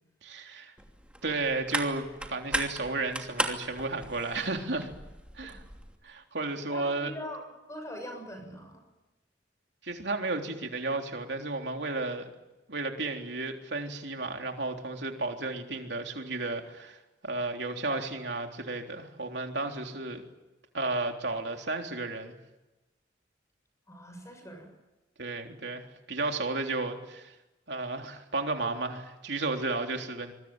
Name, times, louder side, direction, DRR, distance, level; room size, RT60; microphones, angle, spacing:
voice 1, 0.2-0.7 1.2-4.9 5.4-5.6 6.0-7.1 9.8-12.3 12.7-20.2 20.7-22.3 25.2-27.4 27.7-30.3, right 3 dB, 65° right, 3 dB, 3.6 m, -33 dB
sound 1, 0.8-6.0, right 1 dB, 5° right, 2.8 m, -37 dB
voice 2, 6.7-8.8 23.9-24.7, equal, 15° left, 4 dB, 7.0 m, -42 dB
26.5 x 22.5 x 9.1 m, 1.0 s
head